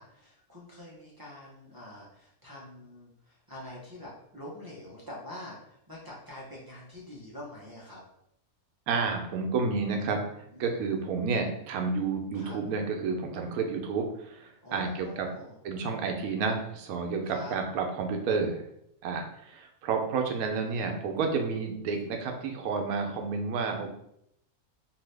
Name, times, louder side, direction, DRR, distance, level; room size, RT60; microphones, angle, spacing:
voice 1, 0.0-8.0 10.5-11.0 12.3-12.6 14.6-15.5 17.2-17.5, left 1 dB, 30° right, -7 dB, 0.4 m, -45 dB
voice 2, 8.9-15.3 15.6-18.6 19.0-23.9, right 4 dB, 85° right, 4 dB, 1.1 m, -30 dB
2.8 x 2.6 x 3.2 m, 0.75 s
omnidirectional pair, 1.5 m